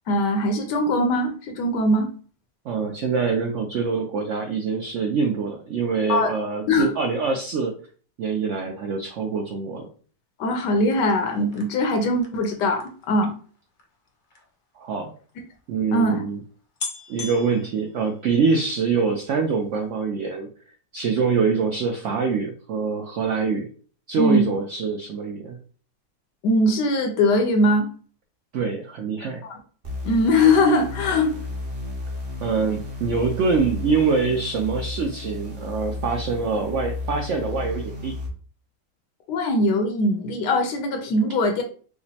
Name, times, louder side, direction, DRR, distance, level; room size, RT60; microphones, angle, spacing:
voice 1, 0.1-2.1 6.1-6.3 6.7-6.9 10.4-13.3 15.9-16.2 24.2-24.5 26.4-27.9 29.4-29.6 30.0-31.3 39.3-41.6, left 1 dB, 80° left, 4 dB, 1.3 m, -21 dB
voice 2, 2.6-7.7 8.2-9.9 14.8-15.1 15.7-16.4 17.1-20.5 20.9-23.7 24.1-25.6 28.5-29.4 32.4-38.2, right 5 dB, 75° right, 3 dB, 0.6 m, -24 dB
sound 1, 10.9-14.5 15.3-15.4 15.6-15.7 16.3-16.4 16.8-18.7 19.1-19.5 19.8-19.9, left 4 dB, 55° left, 0.5 m, -40 dB
sound 2, 29.8-38.3, left 3 dB, 35° right, 0.9 m, -33 dB
4.9 x 2.1 x 2.7 m, 0.42 s
omnidirectional pair, 1.8 m